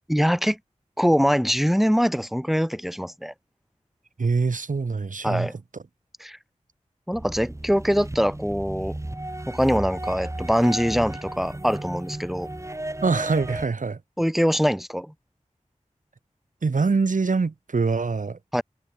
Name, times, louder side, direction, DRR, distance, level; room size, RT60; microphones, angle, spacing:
voice 1, 0.1-0.6 1.0-3.3 5.2-5.5 6.2-6.4 7.1-8.9 9.5-12.5 14.2-15.1 18.5-18.6, equal, ahead, 4.8 m, -23 dB
voice 2, 4.2-5.5 5.7-5.8 13.0-14.0 16.6-18.4, right 4 dB, 85° right, 2.7 m, -24 dB
sound 1, 7.1-13.7, right 1 dB, 20° right, 3.9 m, -34 dB
wide cardioid pair, 75°, 13 cm